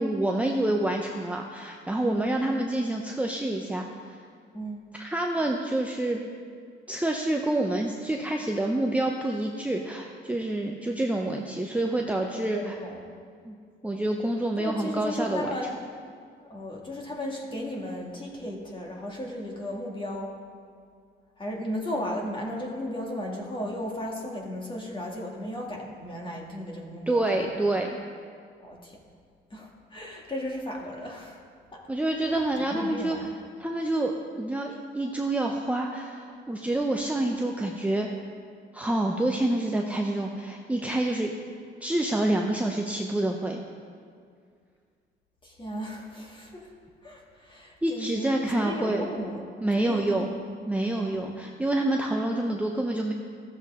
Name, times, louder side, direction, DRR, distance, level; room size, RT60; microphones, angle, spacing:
voice 1, 0.0-4.2 5.0-6.2 6.9-12.8 13.5-13.6 13.8-15.5 27.1-27.9 31.9-33.2 33.6-38.1 38.7-41.3 41.8-43.6 47.8-49.1 49.6-50.3 50.7-53.1, right 1 dB, 5° right, 1 dB, 0.7 m, -27 dB
voice 2, 2.0-2.3 4.5-4.9 12.3-13.0 14.6-15.7 16.4-20.4 21.4-27.5 28.6-29.0 29.5-31.4 31.7-31.8 32.6-33.2 45.4-46.7 47.0-50.3 51.0-51.2, left 1 dB, 25° left, -1 dB, 2.0 m, -35 dB
14.5 x 7.4 x 3.6 m, 2.2 s
cardioid pair, 90°, 20 cm